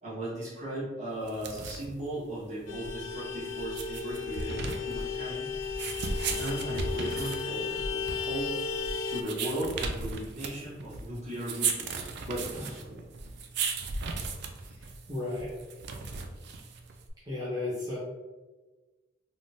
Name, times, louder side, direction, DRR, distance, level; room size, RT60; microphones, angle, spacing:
voice 1, 0.0-5.9 6.4-8.6 9.1-13.0 14.6-14.8, right 1 dB, 40° right, -9 dB, 1.3 m, -37 dB
sound 1, 1.2-17.1, right 4 dB, 60° right, 0.3 m, -36 dB
Vehicle horn car horn honking, 2.7-9.2, left 5 dB, 75° left, 0.3 m, -34 dB
voice 2, 14.8-15.5 17.3-18.0, left 2 dB, 20° right, -9 dB, 0.6 m, -34 dB
3.4 x 2.1 x 2.6 m, 1.2 s
head